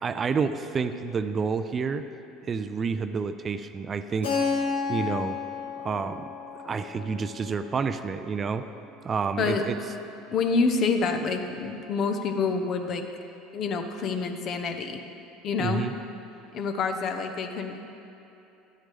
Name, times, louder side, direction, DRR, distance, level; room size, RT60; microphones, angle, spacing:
voice 1, 0.0-2.0 2.4-4.3 4.9-5.4 5.8-6.2 6.6-8.6 9.0-9.8 15.6-15.9, right 5 dB, 35° right, 10 dB, 0.4 m, -29 dB
Keyboard (musical), 4.2-8.8, left 5 dB, 85° left, 1.9 m, -32 dB
voice 2, 10.3-13.0 13.5-15.0 15.4-15.8 16.5-17.8, left 4 dB, 50° left, 6 dB, 0.8 m, -27 dB
12.0 x 9.3 x 3.4 m, 3.0 s
hypercardioid pair, 70°, 0 cm